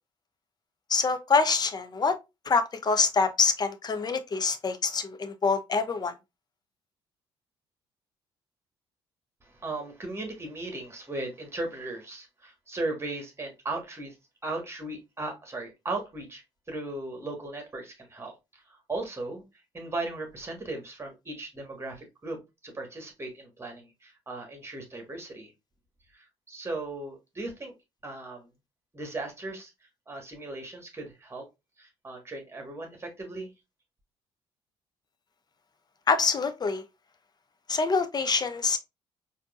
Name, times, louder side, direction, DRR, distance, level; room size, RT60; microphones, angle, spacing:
voice 1, 0.9-2.2 2.5-6.1 36.1-36.8 37.7-38.8, left 4 dB, 30° left, 0.7 m, -25 dB
voice 2, 9.4-14.2 14.4-16.4 16.7-19.4 19.7-25.5 26.1-27.7 28.0-28.5 28.9-29.7 30.1-31.5 31.8-33.5, right 2 dB, 20° right, 1.5 m, -37 dB
4.4 x 2.7 x 2.4 m
figure-of-eight pair, 50°, 13 cm